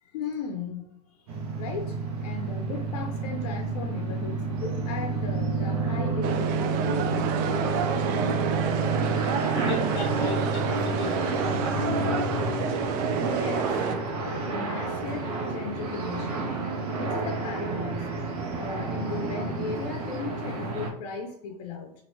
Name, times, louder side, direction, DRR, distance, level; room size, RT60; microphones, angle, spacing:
voice 1, 0.0-7.4 13.2-13.8 14.2-16.5 17.0-18.1 18.6-21.9, left 4 dB, 65° left, 3 dB, 0.6 m, -36 dB
sound 1, 1.3-20.9, right 3 dB, 75° right, 0.8 m, -30 dB
sound 2, 6.2-13.9, right 7 dB, 45° right, 0.4 m, -29 dB
voice 2, 9.3-11.5, left 3 dB, 25° left, 0 dB, 1.2 m, -35 dB
2.9 x 2.5 x 3.0 m, 0.74 s
hypercardioid pair, 105°, 20 cm